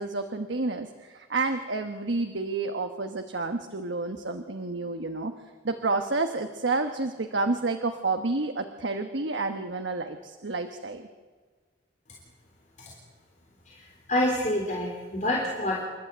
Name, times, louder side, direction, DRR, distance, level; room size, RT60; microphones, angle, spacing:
voice 1, 0.0-5.3 5.6-11.1, right 3 dB, 80° right, 6 dB, 1.2 m, -30 dB
voice 2, 14.1-15.8, left 1 dB, 40° left, -2 dB, 3.4 m, -27 dB
27.5 x 12.0 x 9.0 m, 1.4 s
head